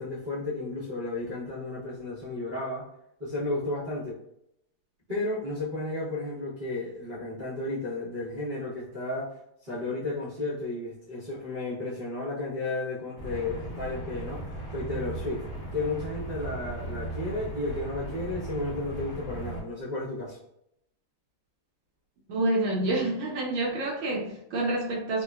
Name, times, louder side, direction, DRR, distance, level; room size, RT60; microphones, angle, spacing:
voice 1, 0.0-2.8 3.2-4.2 5.1-9.3 9.6-14.4 14.7-15.4 15.7-20.4, left 2 dB, 50° right, -13 dB, 0.5 m, -33 dB
sound 1, 13.2-19.6, right 2 dB, 50° left, 1.1 m, -37 dB
voice 2, 22.3-25.2, right 2 dB, 75° right, -2 dB, 1.3 m, -28 dB
3.6 x 2.1 x 2.2 m, 0.78 s
omnidirectional pair, 2.4 m